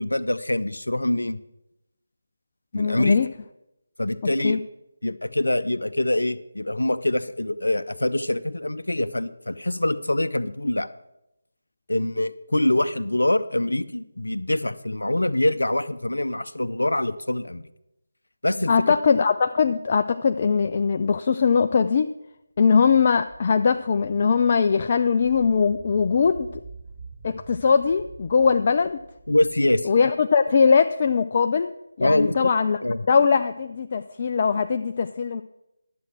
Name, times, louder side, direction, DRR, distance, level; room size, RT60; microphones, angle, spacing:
voice 1, 0.0-1.4 2.7-3.2 4.0-4.6 5.0-10.9 11.9-17.6 18.4-18.7 29.3-29.9 32.0-32.5 32.8-33.0, left 1 dB, 75° left, 12 dB, 0.6 m, -24 dB
voice 2, 2.7-3.3 4.4-4.6 18.7-22.1 22.6-26.5 27.2-29.0 29.9-31.7 32.0-32.8 33.1-35.4, left 5 dB, 35° left, 8 dB, 0.4 m, -21 dB
sound 1, 23.2-30.4, right 3 dB, 15° right, 4.0 m, -46 dB
11.0 x 7.7 x 6.1 m, 0.87 s
figure-of-eight pair, 155°, 0 cm